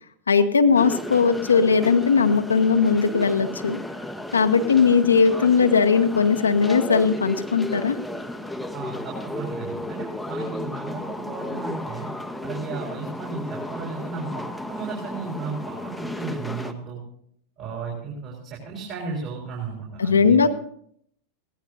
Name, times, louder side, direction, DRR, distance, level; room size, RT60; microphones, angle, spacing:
voice 1, 0.3-3.8 4.3-8.0 20.0-20.5, left 5 dB, 75° left, 7 dB, 0.8 m, -19 dB
sound 1, 0.7-16.7, left 1 dB, ahead, 0.9 m, -34 dB
voice 2, 8.7-12.1 12.4-14.4 14.7-17.0 17.6-20.4, right 4 dB, 40° right, -3 dB, 4.5 m, -34 dB
21.5 x 17.0 x 2.7 m, 0.67 s
figure-of-eight pair, 90°, 0 cm